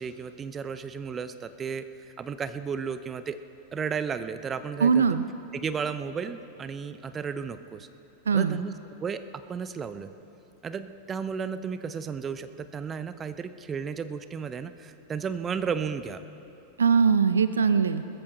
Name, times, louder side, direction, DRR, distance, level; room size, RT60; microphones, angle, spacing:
voice 1, 0.0-1.8 2.2-3.4 3.7-5.1 5.5-7.9 8.3-8.7 9.0-10.1 10.6-16.2, right 6 dB, 20° right, 12 dB, 0.6 m, -33 dB
voice 2, 4.8-5.2 8.3-8.6 16.8-18.0, right 6 dB, 70° right, 12 dB, 0.4 m, -21 dB
21.0 x 13.5 x 3.3 m, 2.9 s
figure-of-eight pair, 90°, 0 cm